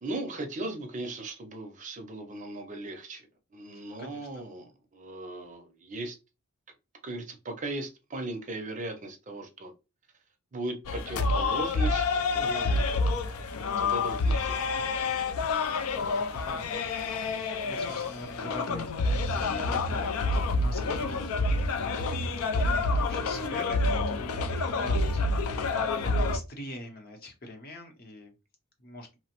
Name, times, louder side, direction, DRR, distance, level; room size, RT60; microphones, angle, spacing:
voice 1, 0.0-3.2 3.5-6.2 7.0-9.7 10.5-12.8 13.8-14.7, right 2 dB, 35° right, 5 dB, 0.5 m, -37 dB
voice 2, 3.7-4.3 12.4-12.7 15.9-21.6 21.8-25.5 25.8-28.3 28.8-29.1, left 1 dB, 45° left, 3 dB, 0.7 m, -43 dB
sound 1, 10.8-26.4, left 3 dB, 75° left, 0.4 m, -28 dB
2.9 x 2.0 x 2.9 m, 0.28 s
head